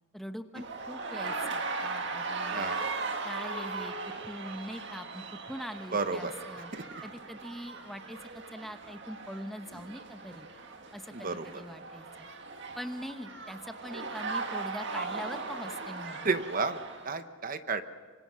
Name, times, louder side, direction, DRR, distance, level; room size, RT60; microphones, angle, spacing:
voice 1, 0.1-2.7 3.2-3.9 4.2-6.7 7.0-10.5 10.9-12.3 12.8-16.3, equal, ahead, 7 dB, 1.0 m, -42 dB
sound 1, 0.6-17.1, right 3 dB, 55° right, 1.9 m, -38 dB
voice 2, 2.5-2.9 5.9-6.3 6.7-6.8 11.1-11.4 16.2-17.8, right 4 dB, 40° right, 10 dB, 1.0 m, -32 dB
26.5 x 25.0 x 6.2 m, 1.5 s
head